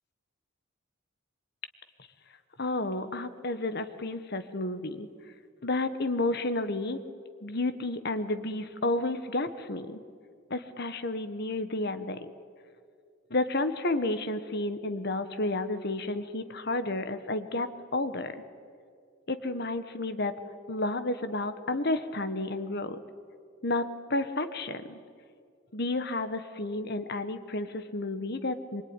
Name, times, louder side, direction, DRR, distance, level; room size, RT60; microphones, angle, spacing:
voice 1, 2.6-5.1 5.6-7.0 7.4-10.0 10.5-12.3 13.3-18.3 19.3-20.3 20.7-23.0 23.6-25.0 25.7-28.8, left 2 dB, 50° left, 10 dB, 1.4 m, -31 dB
24.0 x 23.5 x 9.8 m, 2.2 s
head